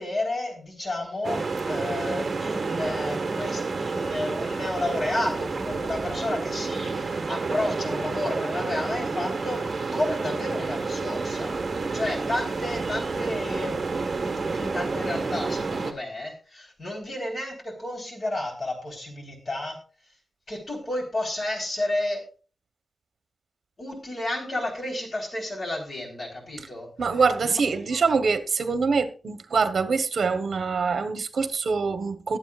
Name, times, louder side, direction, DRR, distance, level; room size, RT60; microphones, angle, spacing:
voice 1, 0.0-11.6 11.9-13.7 14.5-19.8 20.5-22.2 23.8-26.9 27.4-27.6 27.9-28.0, left 1 dB, 40° left, 3.9 m, -31 dB
sound 1, 1.2-15.9, right 4 dB, 40° right, 1.5 m, -29 dB
voice 2, 27.0-32.4, right 5 dB, 65° right, 1.1 m, -24 dB
21.5 x 8.1 x 2.4 m
wide cardioid pair, 165°, 0 cm